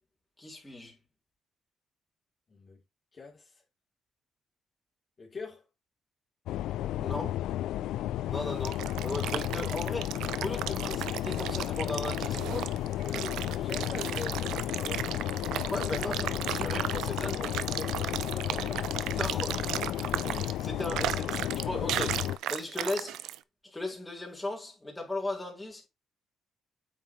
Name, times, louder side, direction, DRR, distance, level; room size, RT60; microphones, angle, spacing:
voice 1, 0.4-1.0 7.0-7.4 8.2-8.7 9.0-12.7 15.5-17.4 19.1-19.9 20.2-23.2 23.6-25.9, left 2 dB, 10° left, 4.0 m, -37 dB
voice 2, 2.5-2.8 3.1-3.6 5.2-5.6 8.5-8.7 13.0-15.2 17.1-18.8, left 4 dB, 40° left, 3.2 m, -43 dB
sound 1, 6.5-22.4, left 13 dB, 85° left, 0.4 m, -33 dB
sound 2, 8.3-23.4, right 12 dB, 85° right, 0.5 m, -35 dB
8.6 x 6.0 x 3.1 m
cardioid pair, 90°, 0 cm